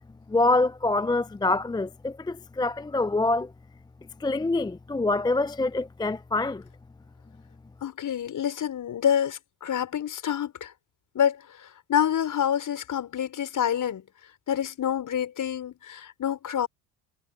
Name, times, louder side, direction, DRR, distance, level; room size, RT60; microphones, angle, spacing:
voice 1, 0.3-3.5 4.2-6.6, left 2 dB, 10° left, 0.6 m, -25 dB
voice 2, 7.8-10.7 11.1-14.0 14.5-16.7, left 9 dB, 45° left, 5.9 m, -27 dB
hypercardioid pair, 65°, 41 cm